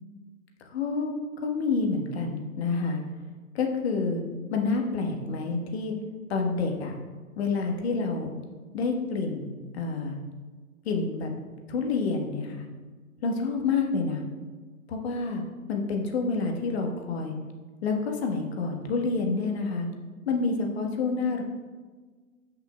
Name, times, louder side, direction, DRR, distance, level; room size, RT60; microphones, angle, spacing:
voice 1, 0.7-1.1 1.4-3.0 3.5-4.2 4.5-6.0 6.3-6.9 7.4-8.3 8.7-9.5 9.7-10.2 10.8-11.3 11.7-12.6 13.2-14.2 14.9-15.4 15.7-17.3 17.8-19.9 20.3-21.4, left 4 dB, 45° left, 2 dB, 1.4 m, -28 dB
13.0 x 5.7 x 2.3 m, 1.4 s
hypercardioid pair, 135°, 42 cm